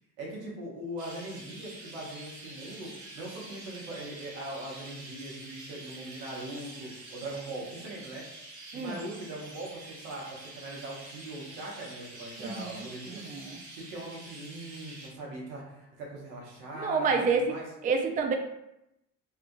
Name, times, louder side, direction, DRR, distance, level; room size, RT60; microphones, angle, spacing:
voice 1, 0.2-8.2 8.7-13.2 13.8-17.6, right 1 dB, 90° right, -3 dB, 0.9 m, -41 dB
Chirp tweet, 1.0-15.1, right 2 dB, 45° right, 1.1 m, -47 dB
voice 2, 8.7-9.0 12.4-13.6 16.7-17.4 17.8-18.3, right 5 dB, 25° right, 4 dB, 0.3 m, -29 dB
2.7 x 2.3 x 2.6 m, 0.86 s
hypercardioid pair, 60°, 39 cm